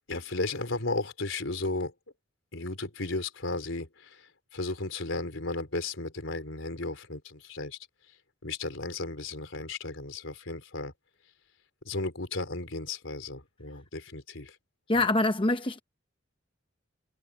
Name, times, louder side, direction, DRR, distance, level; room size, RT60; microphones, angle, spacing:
voice 1, 0.1-1.9 2.5-7.8 8.4-10.9 11.8-14.6, left 2 dB, 80° left, 3.7 m, -34 dB
voice 2, 14.9-15.8, left 2 dB, 25° left, 0.8 m, -25 dB
head